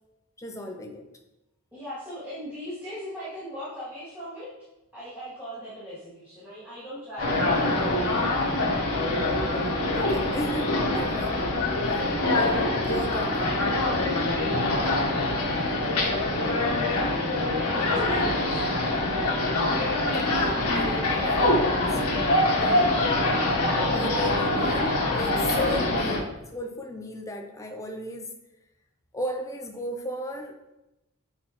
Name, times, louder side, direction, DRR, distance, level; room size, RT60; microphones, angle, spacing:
voice 1, 0.4-1.1 9.2-11.5 11.9-13.6 20.2-22.0 22.6-22.9 23.9-28.3 29.1-30.7, left 1 dB, 15° left, 4 dB, 0.5 m, -35 dB
voice 2, 1.7-4.5 4.9-8.4 14.0-14.1 14.7-15.3 15.6-16.3 17.7-18.9 23.1-23.5, equal, 10° right, -14 dB, 2.4 m, -39 dB
sound 1, 7.2-26.2, left 2 dB, 90° left, 1.1 m, -24 dB
8.5 x 4.3 x 3.0 m, 0.96 s
head